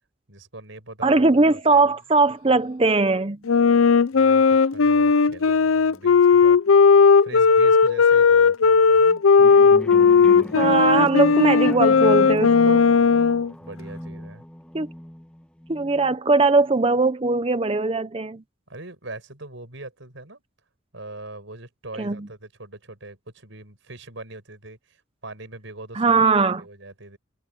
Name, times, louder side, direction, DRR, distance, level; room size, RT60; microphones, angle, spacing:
voice 1, 0.3-1.9 3.7-6.6 7.2-9.2 10.2-10.6 13.6-14.4 18.7-20.4 20.9-26.2 26.6-27.2, right 2 dB, 65° right, 5.9 m, -42 dB
voice 2, 1.0-3.4 10.5-12.8 14.7-14.9 15.7-18.4 22.0-22.2 26.0-26.6, right 3 dB, 30° right, 0.7 m, -20 dB
Wind instrument woodwind instrument, 3.5-13.5, left 5 dB, 90° left, 0.6 m, -16 dB
sound 1, 9.4-16.2, equal, 5° left, 0.9 m, -37 dB
head